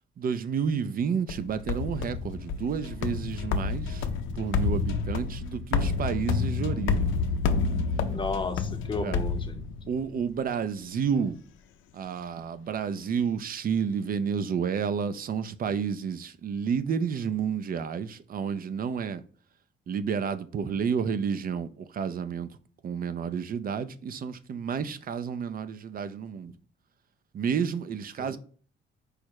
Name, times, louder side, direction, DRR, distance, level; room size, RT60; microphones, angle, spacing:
voice 1, 0.2-4.1 4.4-7.1 7.7-8.3 9.0-9.2 9.9-11.4 11.9-19.2 19.9-22.5 22.8-26.5 27.3-28.4, right 6 dB, 45° right, 0.5 m, -30 dB
sound 1, 1.3-10.1, left 5 dB, 80° left, 0.5 m, -29 dB
voice 2, 8.1-9.7 28.2-28.4, left 3 dB, 25° left, 0.7 m, -33 dB
4.8 x 2.1 x 4.5 m
cardioid pair, 90°, 20 cm